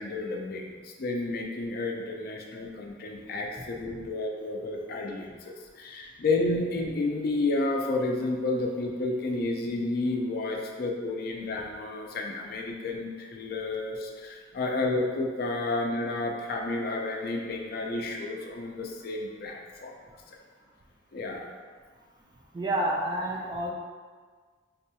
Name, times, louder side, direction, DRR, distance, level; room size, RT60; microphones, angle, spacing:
voice 1, 0.0-19.9 21.1-21.5, left 2 dB, 55° left, 1 dB, 0.4 m, -31 dB
voice 2, 22.5-23.7, right 1 dB, 25° right, -2 dB, 0.4 m, -29 dB
3.9 x 2.2 x 2.8 m, 1.5 s
head